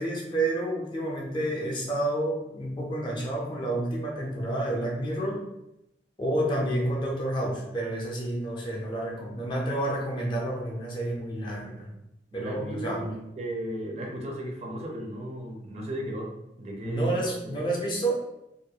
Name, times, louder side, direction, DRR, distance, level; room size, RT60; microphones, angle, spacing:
voice 1, 0.0-5.4 6.2-12.0 12.3-13.2 16.8-18.1, right 1 dB, 25° left, -2 dB, 0.4 m, -29 dB
voice 2, 12.3-16.3 16.6-17.7, right 1 dB, 35° right, 0 dB, 0.4 m, -35 dB
2.3 x 2.2 x 2.7 m, 0.86 s
head